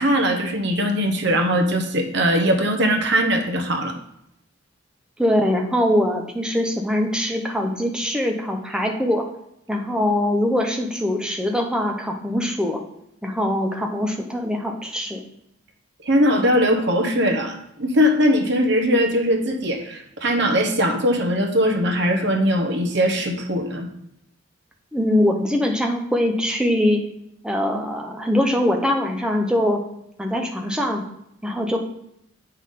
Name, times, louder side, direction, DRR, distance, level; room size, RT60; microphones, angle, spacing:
voice 1, 0.0-3.9 16.0-23.9, equal, 55° right, 5 dB, 0.9 m, -20 dB
voice 2, 5.2-9.2 9.7-12.8 13.2-15.2 24.9-27.0 27.4-29.8 30.2-31.0 31.4-31.8, left 1 dB, 5° right, 2 dB, 0.7 m, -22 dB
8.1 x 5.7 x 3.6 m, 0.77 s
head